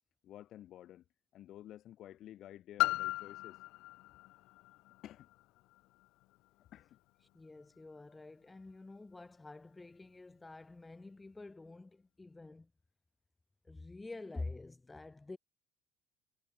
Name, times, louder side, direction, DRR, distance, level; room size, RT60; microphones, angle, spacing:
voice 1, 0.2-1.0 1.3-3.6 5.0-5.3 6.7-7.0, left 12 dB, 50° left, 3.4 m, -52 dB
Piano, 2.8-8.2 9.0-9.1, left 20 dB, 70° left, 0.6 m, -39 dB
voice 2, 7.3-12.7 13.6-15.4, left 2 dB, 10° left, 0.7 m, -48 dB
cardioid pair, 150°, 0 cm